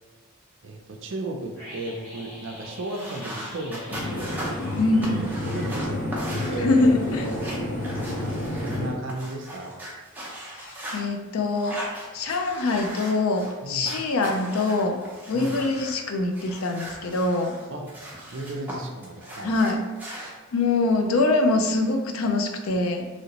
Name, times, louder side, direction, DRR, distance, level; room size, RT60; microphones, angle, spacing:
voice 1, 0.6-4.7 5.4-6.9 7.2-7.6 8.4-9.7 13.6-13.9 15.3-15.6 17.7-17.9 18.3-19.5, right 2 dB, 60° right, 2 dB, 0.5 m, -34 dB
Weird Scream, 1.5-6.4 6.6-6.7, equal, 15° left, 1.0 m, -46 dB
sound 1, 2.9-8.8 9.1-11.0 11.5-13.5 13.8-16.0 16.3-18.7 19.0-20.3, equal, 10° right, 0.5 m, -38 dB
sound 2, 3.9-8.9, left 1 dB, 40° left, 0.7 m, -30 dB
voice 2, 4.8-5.4 6.6-7.2 10.6-11.8 12.1-15.0 15.3-17.6 19.4-19.8 20.5-23.1, left 2 dB, 85° left, 4 dB, 0.4 m, -24 dB
3.0 x 2.8 x 2.8 m, 1.3 s
head